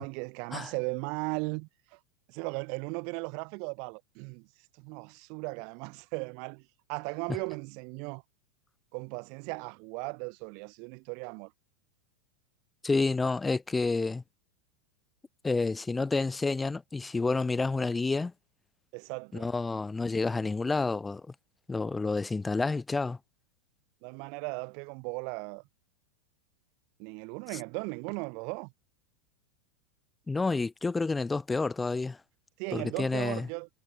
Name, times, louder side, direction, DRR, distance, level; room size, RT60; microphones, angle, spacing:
voice 1, 0.0-2.0 2.3-4.5 4.8-6.6 6.9-8.2 8.9-11.5 18.9-19.5 24.0-25.6 27.0-28.7 32.6-33.7, right 37 dB, 45° right, 5.7 m, -37 dB
voice 2, 12.8-14.2 15.4-18.3 19.3-21.3 21.7-23.2 30.3-32.2 32.7-33.5, left 3 dB, 10° left, 2.8 m, -29 dB
figure-of-eight pair, 90°, 0 cm